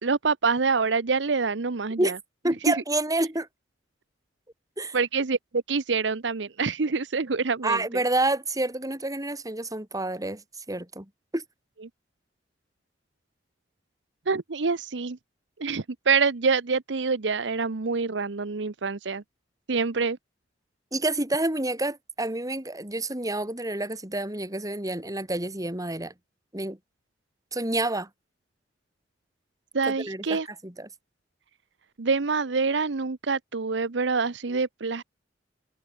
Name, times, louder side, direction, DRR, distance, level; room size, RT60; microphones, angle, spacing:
voice 1, 0.0-2.2 2.7-2.8 4.9-7.8 14.3-15.2 15.6-19.2 19.7-20.2 29.7-30.5 32.0-35.0, right 4 dB, 75° right, 0.8 m, -26 dB
voice 2, 2.4-3.5 4.8-5.0 7.6-11.4 20.9-26.1 26.5-26.8 27.5-28.1 29.9-30.9, right 2 dB, 20° right, 4.8 m, -28 dB
head